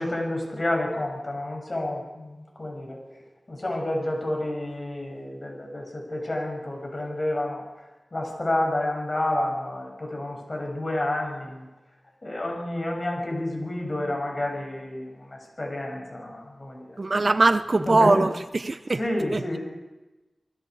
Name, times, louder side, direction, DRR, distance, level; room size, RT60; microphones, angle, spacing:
voice 1, 0.0-3.0 3.5-7.6 8.1-11.7 12.2-17.0 17.7-18.3 18.9-19.6, left 1 dB, 40° left, 7.5 m, -29 dB
voice 2, 17.0-19.0 19.3-19.4, right 2 dB, 45° right, 0.8 m, -21 dB
30.0 x 20.0 x 5.0 m
wide cardioid pair, 75°, 0 cm